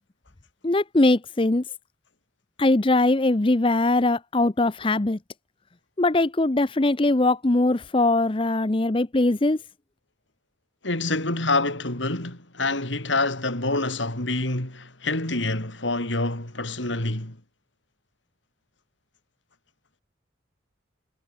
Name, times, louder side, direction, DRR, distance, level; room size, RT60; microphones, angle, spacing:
voice 1, 0.6-1.6 2.6-5.2 6.0-9.6, left 2 dB, 25° left, 0.7 m, -21 dB
voice 2, 10.8-17.4, left 2 dB, 75° left, 4.9 m, -26 dB
head